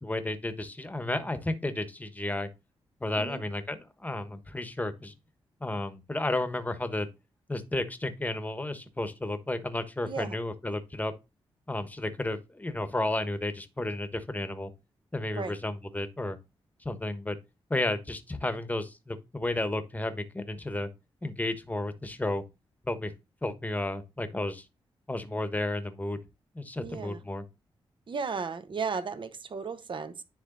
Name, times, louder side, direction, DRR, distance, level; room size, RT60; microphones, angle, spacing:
voice 1, 0.0-2.5 3.0-5.1 5.6-7.1 7.5-11.1 11.7-14.7 15.1-16.4 16.8-17.4 17.7-20.9 21.2-22.4 22.8-23.1 23.4-24.6 25.1-26.2 26.5-27.4, left 2 dB, 15° left, 1.1 m, -32 dB
voice 2, 10.0-10.4 15.3-15.5 26.8-27.2 28.1-30.2, right 5 dB, 50° right, 1.0 m, -35 dB
9.9 x 3.3 x 3.9 m
cardioid pair, 70°, 10 cm